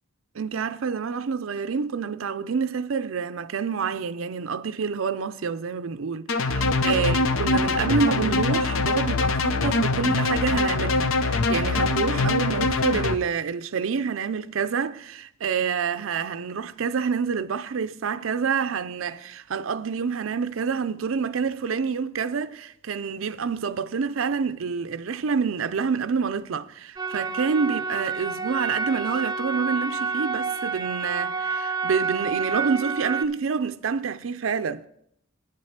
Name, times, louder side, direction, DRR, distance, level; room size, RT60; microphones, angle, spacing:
voice 1, 0.3-34.8, right 5 dB, 80° right, 0.5 m, -27 dB
sound 1, 6.3-13.2, left 3 dB, 85° left, 0.7 m, -23 dB
sound 2, 27.0-33.2, right 5 dB, 20° right, 0.4 m, -29 dB
10.5 x 7.7 x 5.7 m
head